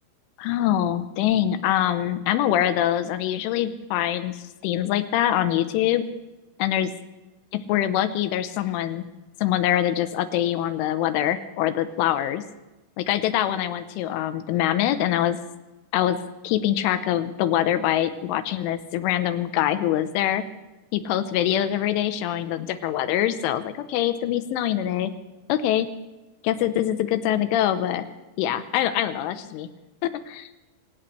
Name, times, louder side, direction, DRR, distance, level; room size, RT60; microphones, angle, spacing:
voice 1, 0.4-6.0 6.6-6.9 7.5-9.0 9.4-12.4 13.0-15.4 15.9-20.4 20.9-25.1 25.5-25.9 26.4-28.0 28.4-29.7 30.0-30.5, left 11 dB, 80° left, 11 dB, 3.2 m, -24 dB
25.5 x 16.5 x 3.3 m, 1.1 s
omnidirectional pair, 5.8 m